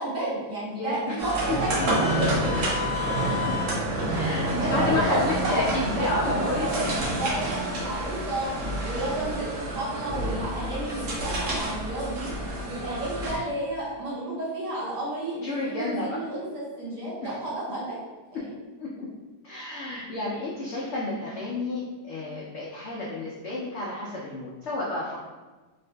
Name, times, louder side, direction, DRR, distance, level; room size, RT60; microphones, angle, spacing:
voice 1, 0.0-2.3 4.1-8.5 8.8-12.3 12.6-18.0 18.3-18.5, right 2 dB, 80° right, -8 dB, 1.8 m, -32 dB
voice 2, 0.7-1.1 4.1-6.8 15.4-16.2 17.2-17.4 18.3-18.4 18.8-19.1 19.4-25.2, left 2 dB, 85° left, -5 dB, 0.6 m, -31 dB
sound 1, 1.2-13.4, right 1 dB, 60° right, 1.0 m, -28 dB
3.7 x 2.5 x 2.2 m, 1.3 s
omnidirectional pair, 1.8 m